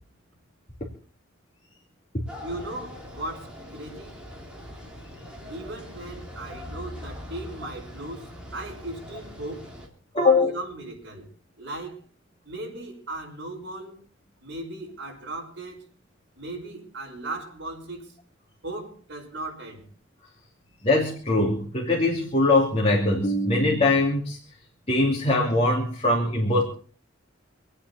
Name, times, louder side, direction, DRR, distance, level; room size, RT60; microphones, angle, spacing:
sound 1, 2.3-9.9, left 1 dB, 5° right, 3.5 m, -42 dB
voice 1, 2.4-4.1 5.5-9.7 10.1-11.3 11.6-12.0 12.4-14.0 14.4-15.8 16.4-18.1 18.6-19.9, right 2 dB, 65° right, 5.9 m, -37 dB
voice 2, 10.1-10.6 20.8-24.4 24.9-26.6, left 2 dB, 30° left, 2.8 m, -22 dB
27.5 x 9.1 x 4.2 m
head